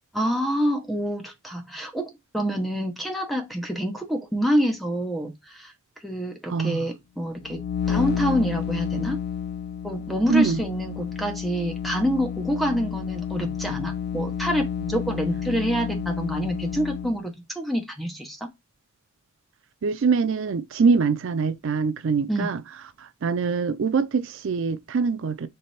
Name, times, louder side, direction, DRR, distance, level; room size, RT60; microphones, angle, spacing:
voice 1, 0.1-5.7 6.0-7.6 7.9-9.2 9.8-18.5 22.3-22.6, equal, ahead, 0.9 m, -27 dB
voice 2, 6.5-6.8 10.3-10.6 19.8-22.6 23.0-25.5, right 5 dB, 60° right, 0.4 m, -23 dB
sound 1, 7.3-17.2, left 8 dB, 50° left, 0.4 m, -30 dB
3.3 x 3.3 x 4.2 m
head